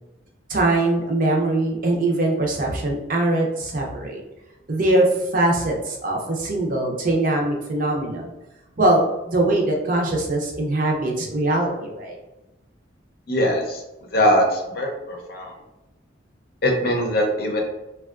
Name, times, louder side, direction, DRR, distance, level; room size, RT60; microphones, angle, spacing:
voice 1, 0.5-4.2 4.7-8.3 8.8-12.2, right 2 dB, 45° right, 0 dB, 0.6 m, -22 dB
voice 2, 13.3-13.8 14.1-15.5 16.6-17.6, equal, 50° left, 1 dB, 0.6 m, -21 dB
3.5 x 2.2 x 2.4 m, 0.98 s
head